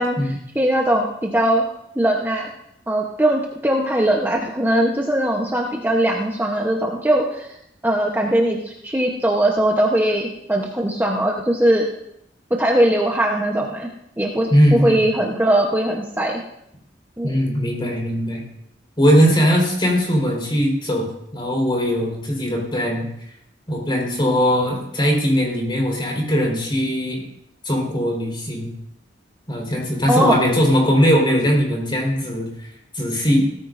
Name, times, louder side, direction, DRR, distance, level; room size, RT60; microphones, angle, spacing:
voice 1, 0.0-1.6 2.0-2.5 2.9-7.6 7.8-11.9 12.6-13.9 14.2-16.4 17.2-17.4 30.1-30.4, right 1 dB, 10° right, 0 dB, 1.0 m, -20 dB
voice 2, 14.5-15.0 17.2-18.4 19.0-23.0 23.7-27.2 27.6-28.7 29.5-32.7 32.9-33.4, equal, 25° left, -2 dB, 4.4 m, -19 dB
17.5 x 14.5 x 2.6 m, 0.77 s
head